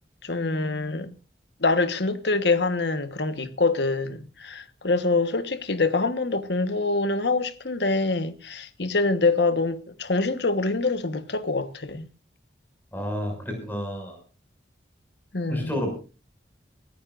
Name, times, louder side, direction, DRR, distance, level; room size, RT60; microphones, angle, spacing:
voice 1, 0.2-1.1 1.6-12.1 15.3-15.8, left 3 dB, 70° left, 1.3 m, -25 dB
voice 2, 12.9-14.2 15.5-15.9, equal, 10° left, 6.2 m, -30 dB
23.0 x 14.5 x 2.6 m
head